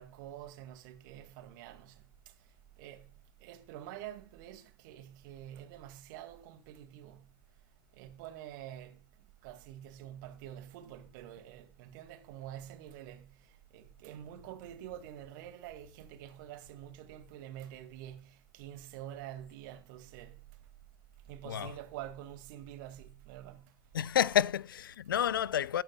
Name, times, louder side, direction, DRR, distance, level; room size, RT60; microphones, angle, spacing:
voice 1, 0.0-1.9 2.8-3.0 3.4-7.2 8.0-9.0 9.4-13.2 13.7-18.3 18.5-20.3 21.3-23.6, right 12 dB, 60° right, 2.0 m, -47 dB
voice 2, 21.4-21.8 23.9-25.8, left 9 dB, 75° left, 0.5 m, -29 dB
20.5 x 9.0 x 2.2 m
figure-of-eight pair, 65°, 11 cm